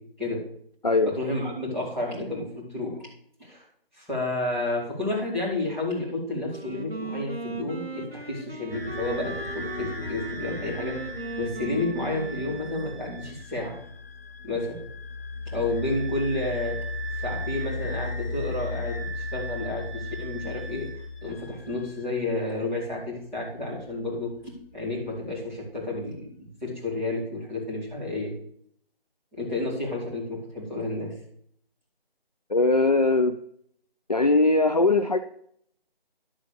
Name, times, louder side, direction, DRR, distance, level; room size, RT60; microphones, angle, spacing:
voice 1, 1.1-3.0 3.4-3.6 4.0-11.1 11.4-13.8 14.4-14.8 15.5-16.8 17.1-20.9 21.2-28.3 29.3-31.1, left 2 dB, 5° left, -14 dB, 2.5 m, -31 dB
Wind instrument woodwind instrument, 6.5-13.2, right 3 dB, 75° right, 2.1 m, -38 dB
sound 1, 8.7-21.8, left 2 dB, 70° left, 2.4 m, -35 dB
voice 2, 32.5-33.4 34.1-35.2, left 3 dB, 45° left, 9 dB, 0.4 m, -20 dB
12.0 x 4.2 x 7.0 m, 0.66 s
figure-of-eight pair, 170°, 30 cm